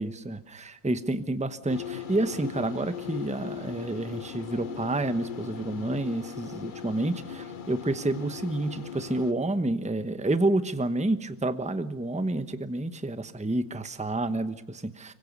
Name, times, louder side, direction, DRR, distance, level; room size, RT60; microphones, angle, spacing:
voice 1, 0.0-15.1, right 2 dB, 5° right, 11 dB, 0.6 m, -29 dB
sound 1, 1.7-9.3, left 8 dB, 40° left, 0.7 m, -39 dB
26.0 x 24.0 x 5.4 m, 0.90 s
omnidirectional pair, 1.9 m